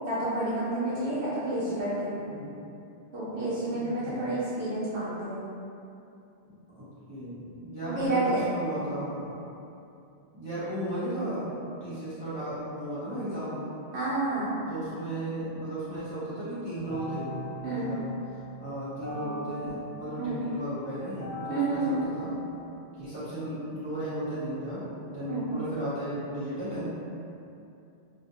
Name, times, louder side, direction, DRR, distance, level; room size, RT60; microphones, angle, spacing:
voice 1, 0.1-2.1 3.1-5.4 7.8-8.5 13.9-14.5 17.6-17.9 20.2-20.4 21.5-22.0 25.3-25.5, right 2 dB, 75° right, -10 dB, 0.8 m, -29 dB
voice 2, 2.1-2.6 3.7-4.3 6.7-9.4 10.3-11.5 11.8-13.6 14.7-18.1 18.6-22.4 22.9-27.0, right 1 dB, 30° right, -14 dB, 0.6 m, -35 dB
sound 1, 16.9-22.8, equal, 55° left, 0.5 m, -40 dB
2.3 x 2.0 x 2.6 m, 2.7 s
omnidirectional pair, 1.1 m